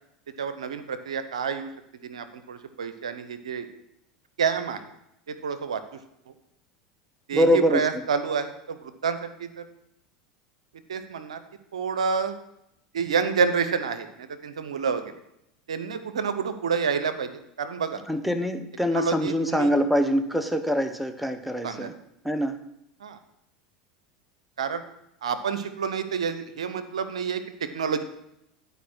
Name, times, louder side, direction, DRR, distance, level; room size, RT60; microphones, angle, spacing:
voice 1, 0.4-1.7 2.1-3.7 4.4-4.8 5.3-5.8 7.3-9.6 10.9-11.4 11.7-12.3 12.9-15.1 15.7-18.0 18.9-19.7 21.6-21.9 23.0-23.2 24.6-24.8 25.2-28.0, right 6 dB, 85° right, 11 dB, 0.7 m, -28 dB
voice 2, 7.3-8.0 18.1-21.9 22.2-22.6, equal, 5° right, 8 dB, 0.9 m, -24 dB
11.0 x 5.0 x 6.1 m, 0.81 s
hypercardioid pair, 85°, 3 cm